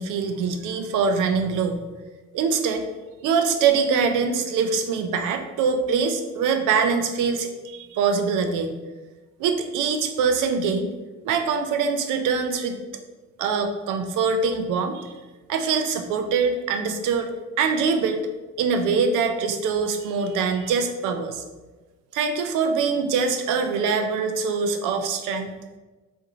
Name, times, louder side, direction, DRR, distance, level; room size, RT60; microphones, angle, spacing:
voice 1, 0.0-1.8 2.3-2.9 3.2-8.7 9.4-10.9 11.2-12.8 13.4-15.1 15.5-17.3 17.6-18.2 18.6-21.4 22.1-25.5, right 5 dB, 85° right, 6 dB, 0.5 m, -23 dB
3.6 x 2.6 x 2.9 m, 1.2 s
cardioid pair, 90°, 30 cm